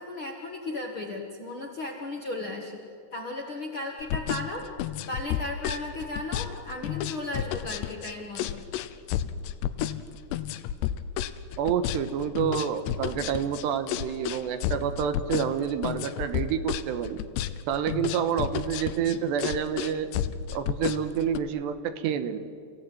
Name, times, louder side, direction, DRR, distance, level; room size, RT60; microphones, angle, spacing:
voice 1, 0.0-2.8 3.1-4.7 5.1-8.7, left 2 dB, 50° left, 1 dB, 1.6 m, -35 dB
sound 1, 4.0-21.4, left 11 dB, 80° left, 2.9 m, -31 dB
voice 2, 11.6-17.2 17.7-20.1 20.5-22.4, right 8 dB, 80° right, 10 dB, 3.3 m, -28 dB
29.0 x 16.5 x 9.6 m, 2.3 s
omnidirectional pair, 5.0 m